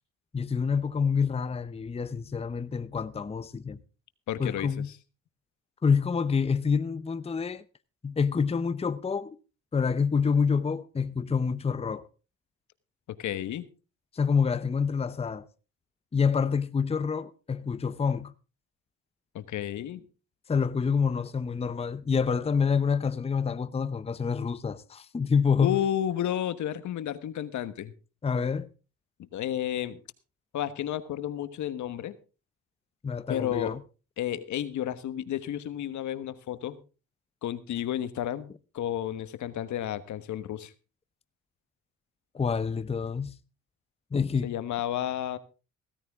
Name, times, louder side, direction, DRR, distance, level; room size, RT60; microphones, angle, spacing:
voice 1, 0.3-3.8 4.4-4.9 5.8-7.6 8.0-9.4 9.7-12.1 14.1-15.5 16.1-18.3 20.5-25.8 28.2-28.7 33.0-33.8 42.3-43.4 44.1-44.5, left 6 dB, 20° left, 0.7 m, -27 dB
voice 2, 4.3-4.7 13.1-13.6 19.3-20.0 25.6-27.9 29.2-30.0 30.5-32.2 33.3-33.7 34.2-36.8 37.4-40.7 44.4-45.4, left 11 dB, 75° left, 1.3 m, -32 dB
16.0 x 14.0 x 3.6 m
cardioid pair, 90°, 30 cm